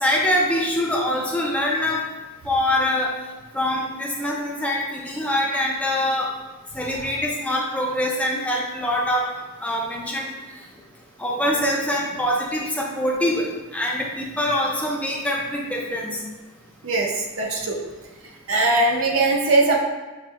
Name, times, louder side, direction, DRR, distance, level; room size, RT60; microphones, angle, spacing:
voice 1, 0.0-2.0 2.4-3.1 3.5-6.3 6.7-9.3 9.6-10.3 11.2-13.5 13.7-16.2, left 1 dB, 5° left, -3 dB, 0.6 m, -24 dB
voice 2, 17.4-17.8 18.5-19.8, right 2 dB, 65° right, 0 dB, 0.7 m, -20 dB
6.3 x 3.2 x 2.2 m, 1.2 s
head